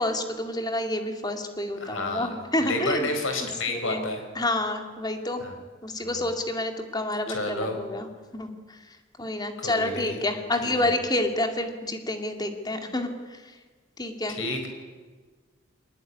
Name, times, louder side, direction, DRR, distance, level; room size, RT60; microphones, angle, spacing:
voice 1, 0.0-3.1 3.7-4.1 4.4-5.4 5.8-8.1 8.3-8.5 9.2-13.4 14.0-14.4, left 1 dB, 20° left, 5 dB, 2.4 m, -28 dB
voice 2, 1.8-2.4 2.6-4.2 5.4-5.5 6.0-6.3 7.3-7.8 9.6-10.2 10.6-10.9 14.3-14.7, left 2 dB, 80° left, 5 dB, 4.7 m, -30 dB
23.0 x 20.0 x 9.6 m, 1.4 s
head